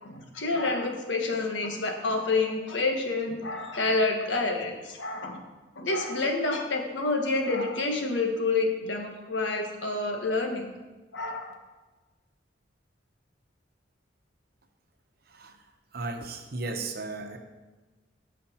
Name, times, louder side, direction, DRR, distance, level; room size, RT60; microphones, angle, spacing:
voice 1, 0.0-5.4 5.8-10.7 11.1-11.5, left 3 dB, 80° left, 3 dB, 1.4 m, -28 dB
voice 2, 15.9-17.4, right 3 dB, 55° right, 5 dB, 1.0 m, -35 dB
14.5 x 5.1 x 4.4 m, 1.2 s
head